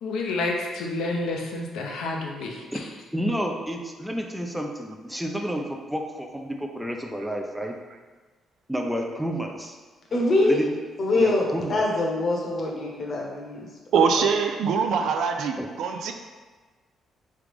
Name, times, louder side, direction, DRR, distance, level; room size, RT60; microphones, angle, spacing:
voice 1, 0.0-2.8, left 2 dB, 80° left, 0 dB, 0.7 m, -29 dB
voice 2, 3.1-7.7 8.7-9.7 10.4-10.7 11.1-11.8 15.6-15.7, equal, ahead, 1 dB, 0.5 m, -30 dB
voice 3, 10.1-10.6 11.0-13.7 14.2-14.3, left 2 dB, 45° left, -2 dB, 1.0 m, -24 dB
voice 4, 13.9-16.1, right 6 dB, 75° right, 5 dB, 0.4 m, -23 dB
3.7 x 3.2 x 3.5 m, 1.4 s
cardioid pair, 90°, 0 cm